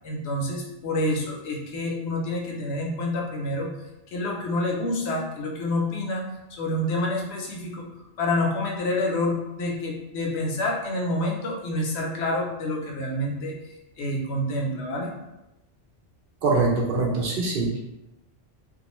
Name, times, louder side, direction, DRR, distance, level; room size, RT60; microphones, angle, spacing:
voice 1, 0.0-3.7 4.1-6.2 6.6-7.8 8.2-13.5 14.0-15.1, left 1 dB, 80° left, 0 dB, 0.9 m, -28 dB
voice 2, 16.4-17.8, right 3 dB, 60° right, -2 dB, 0.7 m, -23 dB
2.3 x 2.3 x 2.9 m, 0.93 s
omnidirectional pair, 1.1 m